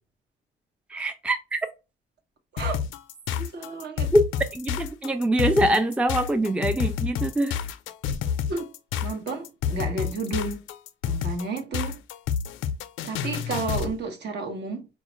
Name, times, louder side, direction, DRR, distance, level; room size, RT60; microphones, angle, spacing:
voice 1, 0.9-1.7 4.1-4.2 4.5-7.6, right 1 dB, 5° right, 0.4 m, -23 dB
sound 1, 2.6-13.9, left 7 dB, 85° left, 0.4 m, -29 dB
voice 2, 3.4-4.1 8.5-8.7 9.0-10.6 11.0-12.0 13.0-14.9, right 3 dB, 60° right, 1.1 m, -32 dB
4.3 x 2.3 x 3.0 m
cardioid pair, 90°, 20 cm